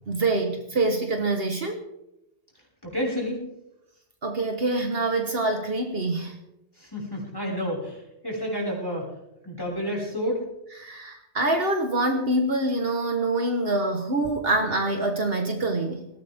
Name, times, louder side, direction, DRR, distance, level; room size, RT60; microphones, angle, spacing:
voice 1, 0.1-1.8 4.2-6.4 10.8-16.1, right 2 dB, 60° right, 4 dB, 1.7 m, -25 dB
voice 2, 2.8-3.4 6.8-9.1 9.4-10.4, equal, 20° left, -4 dB, 5.9 m, -30 dB
19.0 x 17.0 x 3.7 m, 0.86 s
omnidirectional pair, 1.1 m